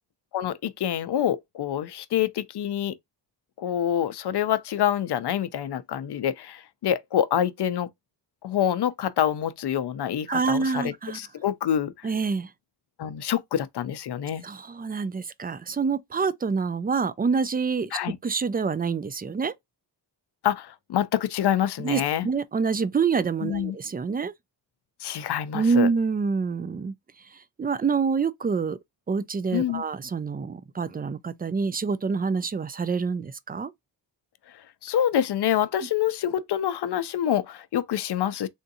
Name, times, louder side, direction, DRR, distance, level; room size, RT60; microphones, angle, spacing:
voice 1, 0.3-3.0 3.6-7.9 8.4-12.1 13.0-14.4 17.9-18.2 20.4-22.3 23.4-23.8 25.0-25.9 29.5-29.8 34.5-38.5, left 10 dB, 65° left, 0.5 m, -26 dB
voice 2, 10.3-11.2 12.0-12.5 14.4-17.9 18.2-19.5 21.8-24.3 25.5-26.9 27.6-28.8 29.1-33.7, right 5 dB, 25° right, 0.3 m, -26 dB
3.6 x 2.6 x 2.6 m
wide cardioid pair, 100°, 44 cm